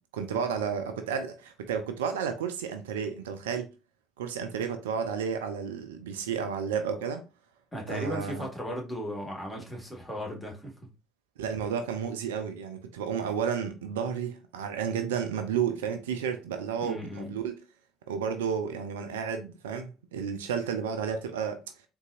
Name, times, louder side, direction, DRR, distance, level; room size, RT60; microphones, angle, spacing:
voice 1, 0.1-3.7 4.2-7.2 7.9-8.5 11.4-17.6 18.1-21.6, right 7 dB, 75° right, 0.4 m, -32 dB
voice 2, 7.7-10.9 16.8-17.4, equal, 10° left, 1.7 m, -36 dB
3.9 x 2.6 x 2.4 m
figure-of-eight pair, 55°, 0 cm